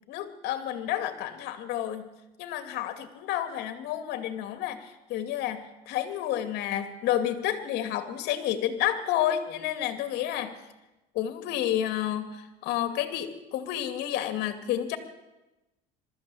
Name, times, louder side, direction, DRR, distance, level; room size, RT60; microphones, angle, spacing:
voice 1, 0.1-2.1 2.4-10.6 11.1-15.0, left 11 dB, 70° left, 8 dB, 2.5 m, -30 dB
22.5 x 14.0 x 8.6 m, 1.0 s
cardioid pair, 120°, 18 cm